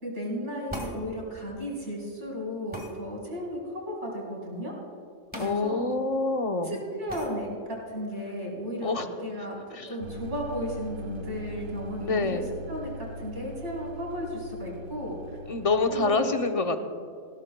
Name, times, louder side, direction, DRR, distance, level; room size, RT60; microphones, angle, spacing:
voice 1, 0.0-4.7 5.3-5.8 6.6-12.4 12.7-15.4 15.9-16.3, equal, 65° right, -4 dB, 4.2 m, -35 dB
sound 1, 0.7-1.0 2.7-2.9 5.3-5.5 5.9-6.0 7.1-7.3, right 1 dB, 5° right, 1.8 m, -37 dB
voice 2, 5.4-6.8 8.8-9.1 9.7-9.9 12.0-12.5 15.5-16.8, left 3 dB, 35° left, 6 dB, 0.7 m, -26 dB
sound 2, 10.0-16.0, equal, 45° right, 0.9 m, -41 dB
19.5 x 16.0 x 2.2 m, 2.3 s
omnidirectional pair, 1.3 m